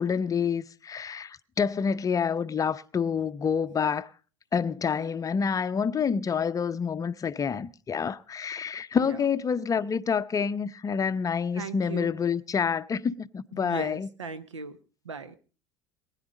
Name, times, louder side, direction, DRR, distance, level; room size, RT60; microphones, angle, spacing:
voice 1, 0.0-4.1 4.5-14.1, left 6 dB, 20° left, 0.7 m, -28 dB
voice 2, 11.5-12.1 13.5-14.8 15.0-15.4, right 4 dB, 80° right, 0.9 m, -38 dB
20.5 x 10.0 x 5.1 m
figure-of-eight pair, 70°, 15 cm